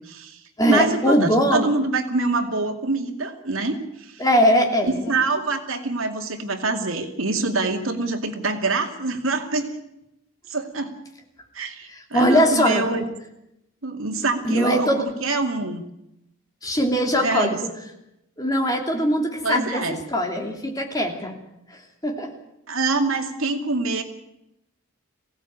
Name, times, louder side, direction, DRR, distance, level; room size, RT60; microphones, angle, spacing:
voice 1, 0.0-0.4 0.7-4.2 4.8-9.7 10.5-10.9 11.5-13.0 13.8-15.8 17.1-17.6 19.4-20.0 22.7-24.0, right 3 dB, 75° right, 5 dB, 2.5 m, -25 dB
voice 2, 0.6-1.7 4.2-5.2 11.9-13.1 14.4-15.0 16.6-17.6 18.4-21.4 21.7-22.3, equal, 15° left, 2 dB, 2.9 m, -21 dB
22.5 x 17.0 x 8.9 m, 0.85 s
head